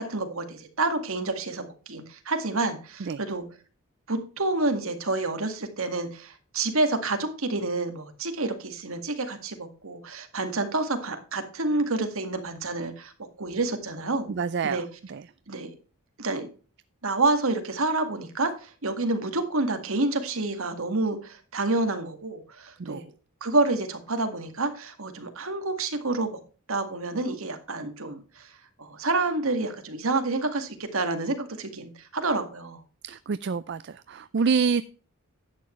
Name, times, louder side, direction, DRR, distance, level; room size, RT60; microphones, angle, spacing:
voice 1, 0.0-3.4 4.1-13.1 13.4-14.3 14.6-14.9 15.5-15.7 16.2-16.5 17.0-23.1 23.4-26.4 26.7-28.5 28.8-32.8, right 2 dB, 70° right, 7 dB, 1.9 m, -28 dB
voice 2, 14.3-14.8 15.1-15.2 22.8-23.0 33.0-34.8, right 5 dB, 50° right, 14 dB, 0.4 m, -27 dB
11.0 x 8.6 x 3.2 m, 0.36 s
head